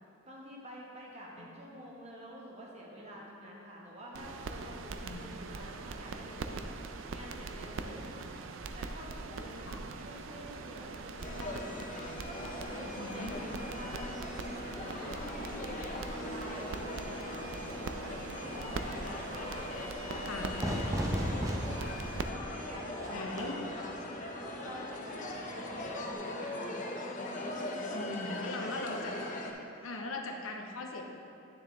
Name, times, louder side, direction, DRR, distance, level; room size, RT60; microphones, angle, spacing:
voice 1, 0.3-6.6 7.1-8.3 8.7-11.8 12.2-14.1 14.4-15.2 15.7-17.4 17.7-19.6 20.1-22.0 22.3-23.9 24.4-26.8 27.3-28.8, equal, 30° right, -3 dB, 1.2 m, -48 dB
sound 1, 4.1-22.2, right 3 dB, 75° right, 0.4 m, -42 dB
voice 2, 5.0-5.4 9.7-9.9 13.0-13.4 20.3-20.6 23.1-23.7 27.9-29.2 29.8-31.0, left 2 dB, 85° left, 2 dB, 0.8 m, -39 dB
sound 2, 11.2-29.5, left 2 dB, 40° left, 0.7 m, -40 dB
Fire / Fireworks, 20.6-26.1, equal, 15° right, 0.6 m, -37 dB
9.4 x 6.9 x 3.2 m, 2.6 s
head